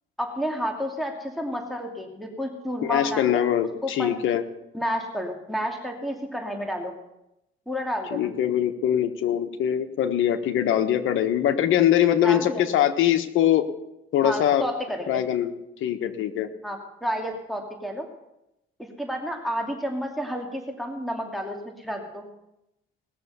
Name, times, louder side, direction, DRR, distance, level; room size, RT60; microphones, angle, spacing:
voice 1, 0.2-3.4 3.8-4.2 4.7-6.9 7.7-8.3 12.2-12.6 14.2-15.2 16.6-18.1 18.8-22.3, equal, ahead, 2 dB, 2.5 m, -31 dB
voice 2, 2.8-4.4 8.1-13.7 14.1-14.7 15.1-15.5 15.8-16.5, left 10 dB, 85° left, 8 dB, 1.2 m, -22 dB
19.0 x 6.8 x 6.9 m, 0.87 s
cardioid pair, 90°, 20 cm